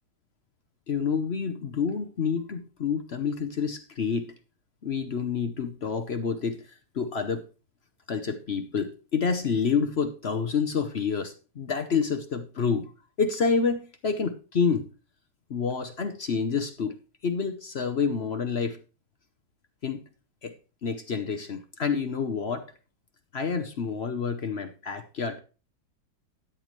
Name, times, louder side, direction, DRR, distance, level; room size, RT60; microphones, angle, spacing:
voice 1, 0.9-4.3 4.8-6.6 6.9-7.4 8.1-12.9 13.2-14.9 15.5-17.0 17.2-18.8 19.8-20.0 20.4-20.5 20.8-22.7 23.3-25.4, left 5 dB, 50° left, 7 dB, 0.8 m, -28 dB
13.5 x 9.1 x 3.1 m, 0.33 s
omnidirectional pair, 2.0 m